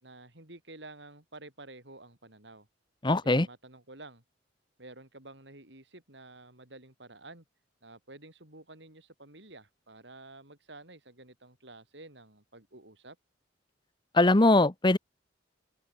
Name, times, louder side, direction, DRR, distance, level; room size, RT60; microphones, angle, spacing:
voice 1, 0.0-2.7 3.2-4.2 4.8-7.4 7.8-13.2, right 2 dB, 65° right, 6.0 m, -50 dB
voice 2, 3.0-3.5 14.1-15.0, left 2 dB, 25° left, 1.0 m, -21 dB
open air
head